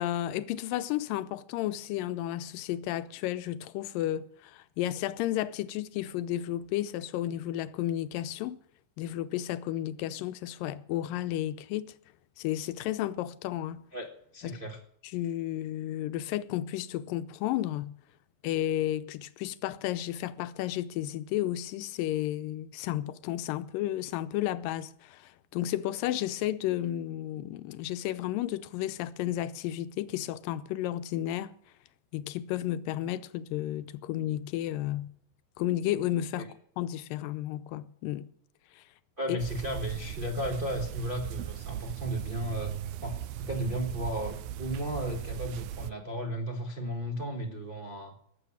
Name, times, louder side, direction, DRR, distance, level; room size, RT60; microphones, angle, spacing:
voice 1, 0.0-8.6 9.0-11.9 12.4-13.8 14.4-14.6 15.1-17.9 18.4-31.5 32.1-35.1 35.6-38.3 39.3-39.4, left 13 dB, 85° left, 2.4 m, -32 dB
voice 2, 14.3-14.8 36.4-36.5 39.2-42.7 43.0-48.1, equal, 35° right, 0.8 m, -34 dB
sound 1, 39.4-45.9, right 11 dB, 75° right, 1.9 m, -38 dB
19.0 x 7.6 x 7.2 m
omnidirectional pair, 3.9 m